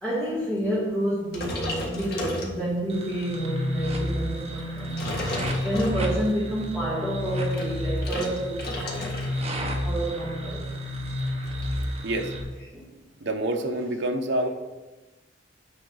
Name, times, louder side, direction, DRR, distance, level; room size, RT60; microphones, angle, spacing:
voice 1, 0.0-5.3 5.6-8.9 9.8-10.6 12.7-12.9 14.4-14.5, right 1 dB, 5° left, 2.0 m, -29 dB
sound 1, 1.3-3.0 3.6-3.8 4.6-6.4 7.2-9.5 9.7-10.0 10.4-10.5 10.7-11.8, left 1 dB, 55° left, 1.7 m, -34 dB
sound 2, 2.9-12.4, left 1 dB, 30° right, 1.2 m, -31 dB
voice 2, 13.2-14.5, right 1 dB, 60° right, 0.9 m, -27 dB
9.3 x 3.9 x 6.3 m
head